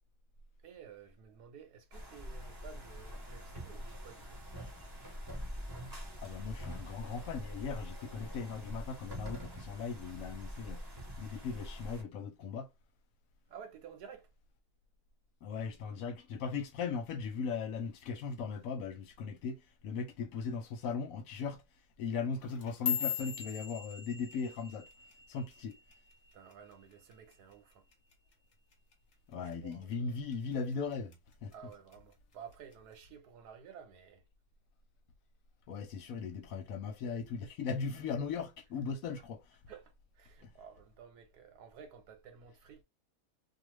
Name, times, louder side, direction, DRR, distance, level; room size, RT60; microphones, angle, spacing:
voice 1, 0.6-4.4 5.7-5.8 13.5-14.3 26.3-27.8 29.4-30.1 31.5-34.2 39.7-42.8, right 7 dB, 80° right, 1.2 m, -53 dB
sound 1, 1.9-12.0, equal, 20° right, 0.8 m, -45 dB
voice 2, 6.2-10.8 11.2-12.7 15.4-21.6 22.0-24.9 25.3-25.8 29.3-31.1 31.4-31.5 35.7-39.4 40.4-40.5, left 5 dB, 70° left, 0.9 m, -38 dB
sound 2, 22.4-26.8 27.1-27.5 27.9-28.3 28.7-28.9 29.5-29.9 30.3-31.1 31.5-31.9 32.7-32.8, left 9 dB, 45° left, 0.9 m, -39 dB
2.4 x 2.4 x 3.1 m
omnidirectional pair, 1.7 m